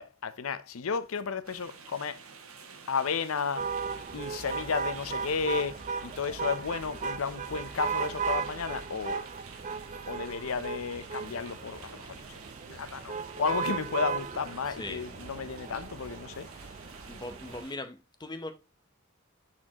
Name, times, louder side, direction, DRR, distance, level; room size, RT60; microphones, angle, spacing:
voice 1, 0.0-2.2 2.9-3.7 4.1-9.2 10.1-12.4 12.7-17.1, left 5 dB, 70° left, 0.6 m, -33 dB
sound 1, 1.4-17.7, right 5 dB, 80° right, 1.2 m, -50 dB
sound 2, 3.6-17.6, right 6 dB, 35° right, 0.5 m, -36 dB
voice 2, 17.1-18.5, left 2 dB, 20° left, 0.7 m, -39 dB
8.5 x 4.3 x 2.9 m
head